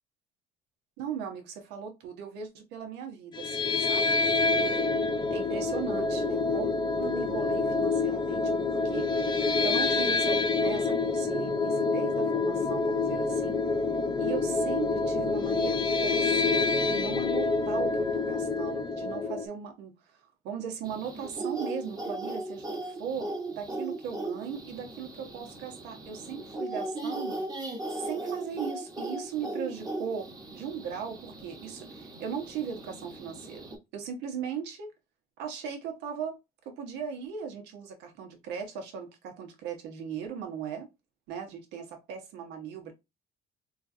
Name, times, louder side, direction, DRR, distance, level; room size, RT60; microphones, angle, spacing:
voice 1, 1.0-4.8 5.3-9.1 9.6-13.6 14.2-20.1 20.4-27.4 27.9-34.9 35.4-36.4 36.6-40.9 41.3-42.9, right 7 dB, 90° right, 1.0 m, -38 dB
sound 1, 3.3-19.5, left 3 dB, 25° left, 0.5 m, -27 dB
sound 2, 20.8-33.8, right 2 dB, 25° right, 1.0 m, -38 dB
3.8 x 2.5 x 2.6 m
cardioid pair, 110°, 17 cm